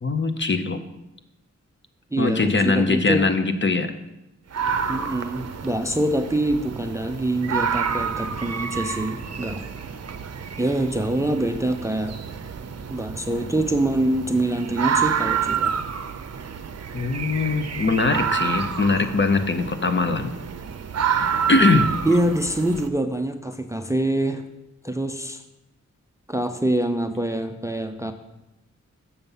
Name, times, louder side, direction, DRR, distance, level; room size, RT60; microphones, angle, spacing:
voice 1, 0.0-0.8 2.2-3.9 16.9-20.3 21.5-21.9, left 3 dB, 40° left, 8 dB, 0.7 m, -21 dB
voice 2, 2.1-3.3 4.9-9.6 10.6-12.1 12.9-15.7 22.0-24.4 24.8-25.4 26.3-28.1, right 1 dB, 10° right, 7 dB, 0.5 m, -25 dB
sound 1, 4.5-22.9, right 7 dB, 60° right, 0.6 m, -29 dB
7.0 x 6.9 x 5.5 m, 0.91 s
wide cardioid pair, 120°, 29 cm